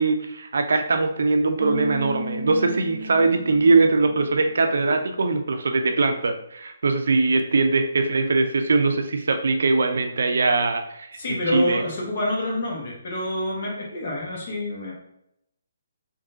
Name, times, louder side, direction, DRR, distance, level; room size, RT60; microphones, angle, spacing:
voice 1, 0.0-11.8, right 3 dB, 70° right, 6 dB, 0.4 m, -21 dB
Bass guitar, 1.6-4.7, equal, 35° left, 0.9 m, -34 dB
voice 2, 11.2-14.9, left 1 dB, 55° left, -2 dB, 1.2 m, -27 dB
3.6 x 2.6 x 2.6 m, 0.77 s
hypercardioid pair, 145°, 0 cm